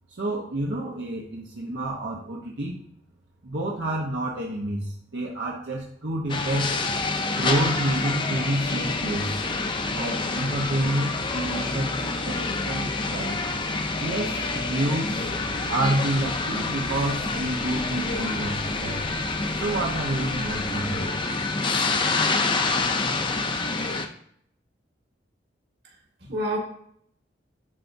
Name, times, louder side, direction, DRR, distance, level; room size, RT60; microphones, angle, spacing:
voice 1, 0.1-2.7 3.4-6.7 7.4-9.4 9.9-13.5 14.0-15.3 15.7-19.0 19.6-21.2, right 1 dB, 80° right, -2 dB, 1.0 m, -29 dB
sound 1, 6.3-24.1, left 3 dB, 25° left, 0.5 m, -27 dB
sound 2, 6.4-21.1, right 1 dB, 25° right, 0.8 m, -44 dB
voice 2, 25.8-26.6, right 1 dB, 60° right, -1 dB, 2.0 m, -30 dB
11.0 x 4.6 x 2.7 m, 0.68 s
head